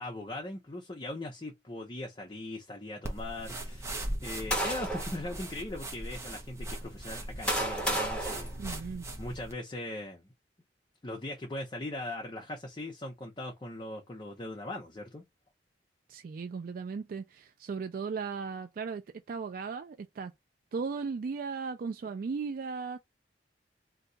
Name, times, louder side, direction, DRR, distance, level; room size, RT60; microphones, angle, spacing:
voice 1, 0.0-8.5 9.2-10.3 11.0-15.2, left 1 dB, 30° left, 0.6 m, -40 dB
sound 1, 3.0-9.5, right 1 dB, 15° right, 0.6 m, -39 dB
sound 2, 4.0-5.2 5.9-6.1 7.0-9.3, equal, 5° left, 1.0 m, -33 dB
voice 2, 8.6-9.1 16.1-19.0 19.3-20.3 20.7-23.0, right 5 dB, 55° right, 0.3 m, -36 dB
2.7 x 2.2 x 3.8 m
head